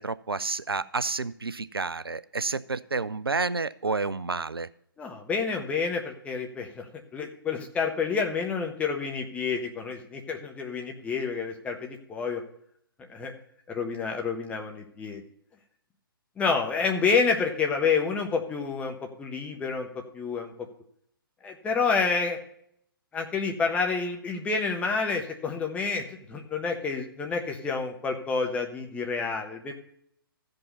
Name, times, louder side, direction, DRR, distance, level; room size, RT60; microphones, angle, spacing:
voice 1, 0.0-4.7, right 4 dB, 80° right, 15 dB, 0.5 m, -30 dB
voice 2, 5.0-6.9 7.1-12.4 13.1-13.3 13.7-15.2 16.4-20.5 21.4-22.4 23.1-29.7, left 5 dB, 10° left, 2 dB, 1.3 m, -29 dB
14.5 x 5.3 x 5.3 m, 0.68 s
figure-of-eight pair, 125°, 12 cm